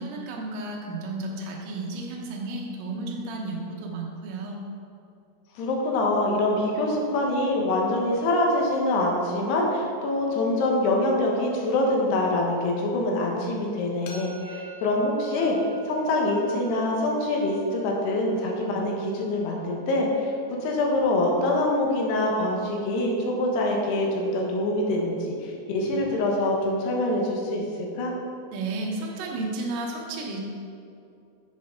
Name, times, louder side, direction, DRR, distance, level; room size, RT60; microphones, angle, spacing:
voice 1, 0.0-4.6 28.5-30.4, right 2 dB, 65° right, -1 dB, 2.3 m, -33 dB
voice 2, 5.6-15.6 15.9-20.3 20.6-27.6 28.0-28.1, left 1 dB, 70° left, -1 dB, 3.1 m, -25 dB
sound 1, 14.1-19.9, right 3 dB, 90° left, 1.7 m, -46 dB
10.5 x 7.8 x 3.8 m, 2.6 s
omnidirectional pair, 5.2 m